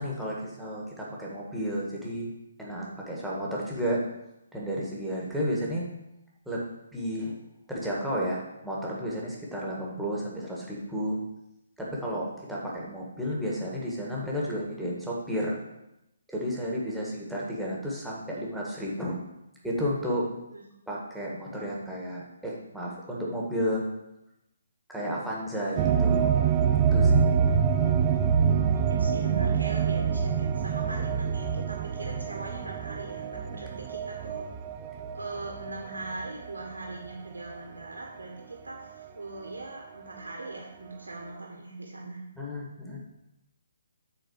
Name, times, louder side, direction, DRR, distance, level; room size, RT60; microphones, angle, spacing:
voice 1, 0.0-2.3 2.6-4.0 4.5-5.9 6.5-6.6 6.9-7.4 7.7-11.2 11.8-15.6 16.3-19.2 19.6-20.3 20.9-23.8 24.9-26.4 26.8-27.3 42.4-43.0, equal, ahead, -5 dB, 1.6 m, -32 dB
sound 1, 25.8-36.6 37.0-37.1 39.0-39.1, right 7 dB, 25° right, 0.4 m, -26 dB
voice 2, 28.9-34.4 35.1-42.2, right 2 dB, 75° right, -1 dB, 1.5 m, -40 dB
7.9 x 4.1 x 6.5 m, 0.87 s
figure-of-eight pair, 140°, 0 cm